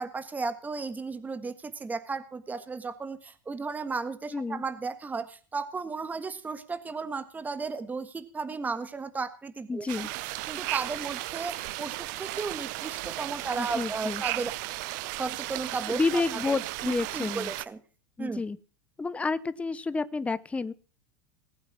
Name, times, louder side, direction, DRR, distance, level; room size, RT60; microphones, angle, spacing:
voice 1, 0.0-10.1 10.5-14.5 15.1-16.6 16.8-17.8 18.2-18.4, right 4 dB, 15° right, 10 dB, 1.5 m, -35 dB
voice 2, 4.3-4.6 9.7-10.1 13.6-14.2 15.9-17.5 18.2-18.6 19.0-20.7, left 3 dB, 10° left, 15 dB, 0.8 m, -30 dB
sound 1, 9.9-17.6, right 19 dB, 60° right, 0.8 m, -35 dB
19.0 x 8.9 x 6.1 m, 0.38 s
hypercardioid pair, 105°, 11 cm